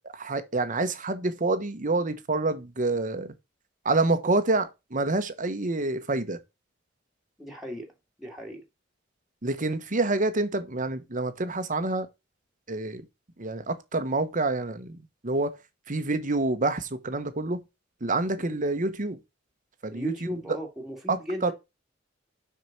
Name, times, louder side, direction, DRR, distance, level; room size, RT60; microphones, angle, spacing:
voice 1, 0.1-3.3 3.8-6.4 9.4-12.1 12.7-13.0 13.4-15.0 15.2-15.6 15.9-17.6 18.0-19.2 19.8-20.1 21.1-21.5, right 2 dB, 40° right, 1.2 m, -27 dB
voice 2, 7.4-7.9 8.2-8.6 18.4-18.6 19.9-21.5, equal, ahead, 2.1 m, -36 dB
6.4 x 5.9 x 5.9 m
head